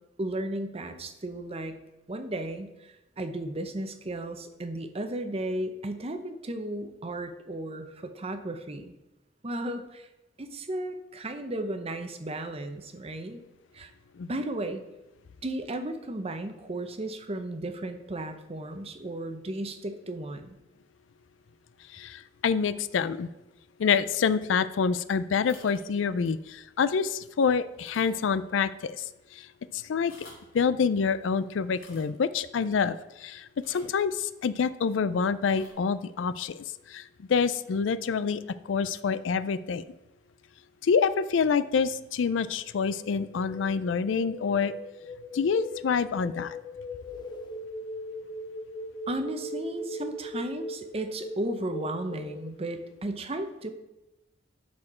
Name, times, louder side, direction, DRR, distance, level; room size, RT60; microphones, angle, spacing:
voice 1, 0.2-1.8 2.1-8.9 9.4-10.1 10.4-13.4 13.7-13.9 14.3-14.8 15.4-20.6 49.1-53.7, right 1 dB, 35° right, 8 dB, 0.7 m, -34 dB
voice 2, 21.9-23.3 23.8-29.0 29.3-29.4 29.7-30.1 30.5-38.4 38.7-39.8 40.8-44.7 45.3-46.6, left 6 dB, 90° left, 15 dB, 0.4 m, -27 dB
sound 1, 25.4-25.8 26.2-26.4 26.9-27.0 27.7-28.4 28.6-28.7 29.9-30.5 31.7-32.1 33.6-34.0 35.4-35.7, left 3 dB, 50° left, 2.4 m, -52 dB
sound 2, 42.7-52.6, left 1 dB, 25° left, 0.5 m, -39 dB
11.0 x 4.3 x 4.3 m, 0.97 s
head